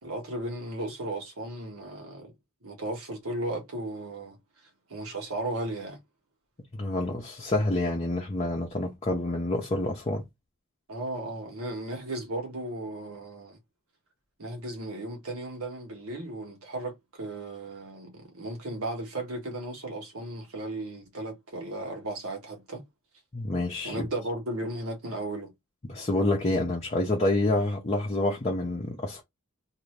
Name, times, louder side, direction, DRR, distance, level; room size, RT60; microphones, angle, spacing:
voice 1, 0.0-2.3 2.6-4.4 4.9-6.0 10.9-13.6 14.4-22.8 23.8-25.5, right 1 dB, 75° right, 1.3 m, -35 dB
voice 2, 6.7-10.2 23.3-24.1 25.9-29.2, left 2 dB, 30° left, 0.6 m, -28 dB
2.6 x 2.6 x 3.2 m
head